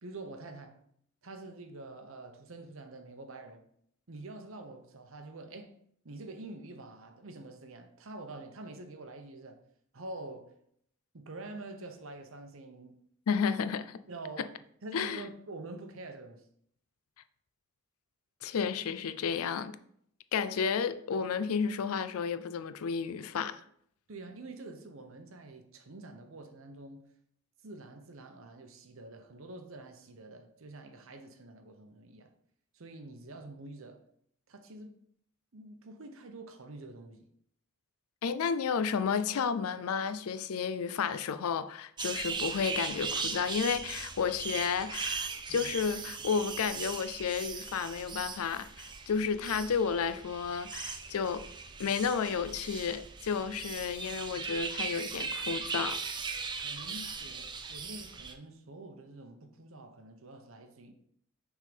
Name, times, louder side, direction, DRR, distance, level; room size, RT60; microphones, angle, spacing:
voice 1, 0.0-0.8 1.2-3.6 4.1-5.7 6.0-9.6 9.9-10.6 11.1-13.0 14.1-14.5 14.8-16.4 24.1-27.1 27.6-32.3 32.7-34.0 34.5-35.0 35.5-37.3 45.5-45.7 56.6-60.9, right 2 dB, 60° right, 0.8 m, -46 dB
voice 2, 13.3-14.0 14.9-15.2 18.4-19.8 20.3-23.6 38.2-51.5 51.8-56.0, left 6 dB, 75° left, 0.4 m, -32 dB
sound 1, 42.0-58.3, right 5 dB, 20° right, 0.5 m, -39 dB
6.3 x 3.7 x 5.1 m
head